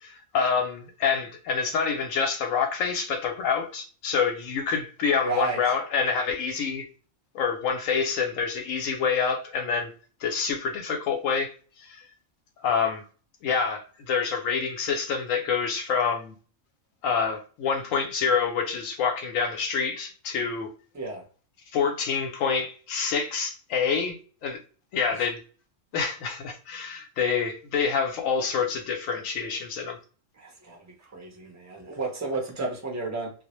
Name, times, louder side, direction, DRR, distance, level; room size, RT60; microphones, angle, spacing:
voice 1, 0.0-6.9 7.3-9.9 10.2-11.5 11.8-12.0 12.6-13.0 13.4-16.4 17.0-20.7 21.7-24.2 24.4-24.6 24.9-25.4 25.9-30.0, left 6 dB, 80° left, 1.0 m, -27 dB
voice 2, 5.2-5.6 20.9-21.2 25.2-25.3 30.4-33.3, right 3 dB, 20° right, 0.4 m, -32 dB
2.3 x 2.0 x 2.9 m
omnidirectional pair, 1.3 m